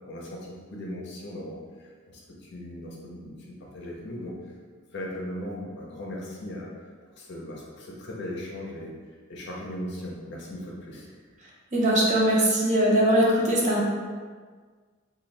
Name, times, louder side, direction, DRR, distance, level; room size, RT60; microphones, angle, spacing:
voice 1, 0.0-4.4 4.9-6.7 7.2-8.9 9.3-11.1, left 1 dB, 55° left, -3 dB, 0.6 m, -38 dB
voice 2, 11.7-13.9, right 1 dB, 35° right, -4 dB, 0.6 m, -21 dB
2.6 x 2.3 x 3.2 m, 1.6 s
head